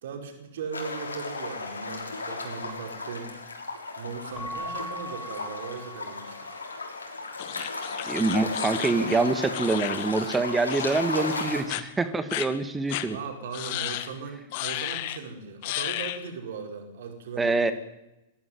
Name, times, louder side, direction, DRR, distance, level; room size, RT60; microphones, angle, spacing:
voice 1, 0.0-3.3 4.0-6.3 13.0-17.7, right 5 dB, 60° right, 5 dB, 5.5 m, -38 dB
sound 1, 0.7-11.6, left 3 dB, 80° left, 6.0 m, -35 dB
Keyboard (musical) / Bell, 4.3-6.8, equal, 15° left, 2.6 m, -40 dB
sound 2, 7.4-10.4 10.7-11.0 11.3-11.8 12.3-12.5 12.9-13.1 13.5-14.1 14.5-15.2 15.6-16.2, left 15 dB, 45° left, 1.9 m, -33 dB
voice 2, 8.1-13.2 17.4-17.7, right 3 dB, 10° right, 11 dB, 2.1 m, -25 dB
24.5 x 17.0 x 9.6 m, 0.92 s
figure-of-eight pair, 100°, 0 cm